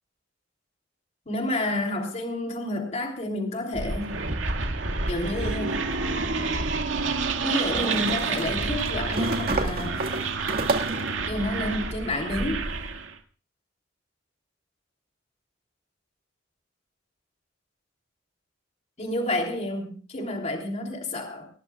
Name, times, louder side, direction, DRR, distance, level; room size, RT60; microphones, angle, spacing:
voice 1, 1.3-4.1 5.1-5.8 7.4-10.0 11.3-12.7 19.0-21.5, left 1 dB, 40° left, 3.2 m, -29 dB
sound 1, 3.7-13.1, right 3 dB, 90° right, 2.1 m, -29 dB
sound 2, 5.8-5.9 7.8-11.1, right 3 dB, 55° right, 1.9 m, -30 dB
25.0 x 18.5 x 2.4 m
head